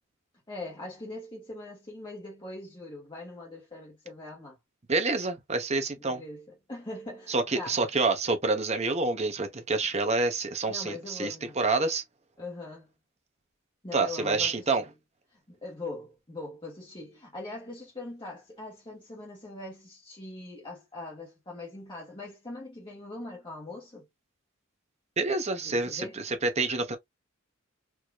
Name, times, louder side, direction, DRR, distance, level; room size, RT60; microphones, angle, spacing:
voice 1, 0.5-4.6 6.0-7.8 10.7-11.6 12.4-12.9 13.8-14.8 15.3-24.1 25.6-26.2, left 2 dB, 25° left, 1.6 m, -41 dB
voice 2, 4.9-6.2 7.3-12.0 13.9-14.8 25.2-27.0, right 3 dB, 35° right, 1.0 m, -27 dB
4.8 x 2.9 x 2.4 m
head